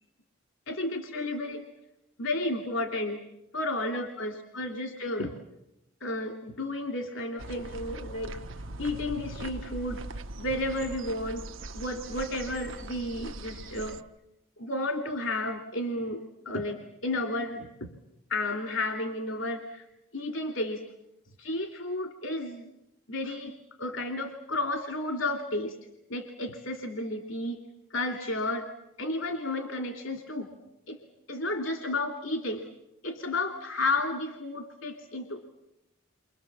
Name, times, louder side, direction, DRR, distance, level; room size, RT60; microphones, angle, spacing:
voice 1, 0.7-1.6 2.2-3.2 3.5-5.3 6.0-8.4 8.8-10.0 10.4-11.4 11.7-14.0 14.6-16.2 16.5-17.9 18.3-19.8 20.1-20.8 21.4-22.7 23.1-23.5 23.8-25.7 26.1-27.6 27.9-28.7 29.0-30.5 30.9-31.0 31.3-32.6 33.0-35.6, left 2 dB, 80° left, 4 dB, 2.6 m, -32 dB
sound 1, 7.4-14.0, right 2 dB, 80° right, 1.0 m, -41 dB
29.0 x 25.5 x 7.3 m, 0.88 s
head